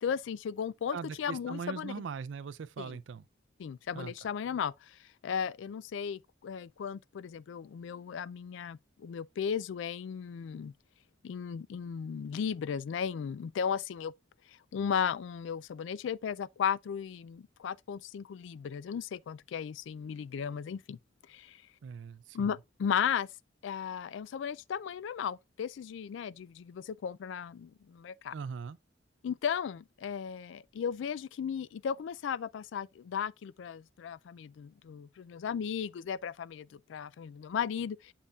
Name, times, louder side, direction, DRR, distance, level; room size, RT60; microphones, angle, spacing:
voice 1, 0.0-1.9 2.8-2.9 3.6-10.7 11.2-14.1 14.5-21.0 21.3-21.6 22.3-23.3 23.6-28.3 29.2-38.1, left 7 dB, 75° left, 0.3 m, -35 dB
voice 2, 0.9-3.3 3.9-4.1 21.8-22.5 28.3-28.8, right 5 dB, 75° right, 0.4 m, -40 dB
7.3 x 6.8 x 2.3 m
head